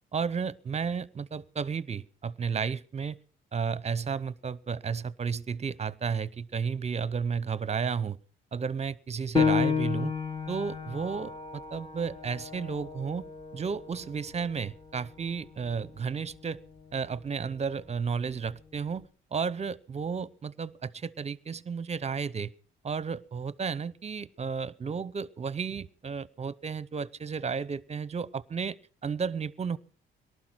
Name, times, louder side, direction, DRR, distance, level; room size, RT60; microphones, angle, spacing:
voice 1, 0.1-3.2 3.5-8.2 8.5-10.1 10.5-13.3 13.5-16.6 16.9-19.0 19.3-22.5 22.8-28.8 29.0-29.8, right 6 dB, 35° right, 20 dB, 0.8 m, -33 dB
Piano, 9.4-14.5 15.0-15.1 15.7-16.2, left 6 dB, 20° left, 1.9 m, -31 dB
18.5 x 12.5 x 6.1 m, 0.41 s
cardioid pair, 90°, 20 cm